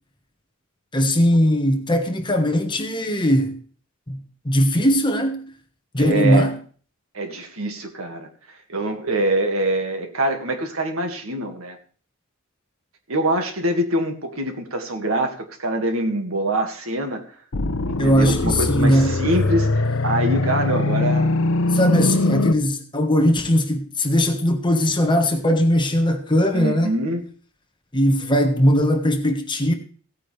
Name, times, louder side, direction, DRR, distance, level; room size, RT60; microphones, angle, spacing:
voice 1, 0.9-3.6 4.1-4.2 4.4-5.4 5.9-6.6 18.0-19.1 21.7-26.9 27.9-29.7, equal, 25° left, 1.4 m, -19 dB
voice 2, 6.0-6.5 7.1-8.3 8.7-11.8 13.1-17.2 17.9-21.4 26.5-27.2, right 1 dB, 80° right, 2.1 m, -24 dB
sound 1, 17.5-22.5, left 2 dB, 65° left, 0.8 m, -22 dB
16.5 x 9.1 x 3.4 m
head